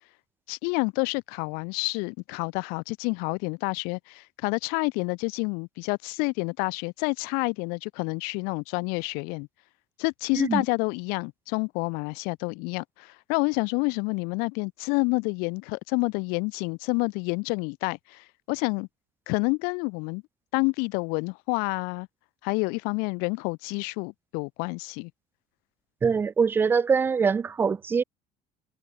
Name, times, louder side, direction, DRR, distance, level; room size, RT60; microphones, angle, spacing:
voice 1, 0.5-9.5 10.0-18.9 19.3-20.2 20.5-22.1 22.4-25.1, left 32 dB, 80° left, 0.6 m, -28 dB
voice 2, 26.0-28.0, right 5 dB, 15° right, 0.3 m, -23 dB
cardioid pair, 165°, 15 cm